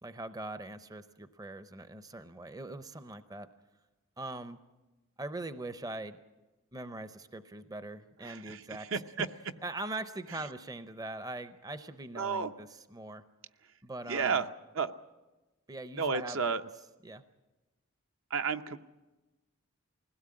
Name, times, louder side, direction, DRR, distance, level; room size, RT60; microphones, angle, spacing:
voice 1, 0.0-3.5 4.2-4.6 5.2-6.2 6.7-8.9 9.6-13.2 13.8-14.4 15.7-16.5 17.0-17.2, right 2 dB, 15° right, 11 dB, 0.6 m, -42 dB
voice 2, 8.2-9.3 12.1-12.5 14.1-14.5 14.7-14.9 16.0-16.6 18.3-18.8, right 5 dB, 65° right, 8 dB, 0.7 m, -32 dB
20.5 x 17.0 x 8.6 m, 1.1 s
head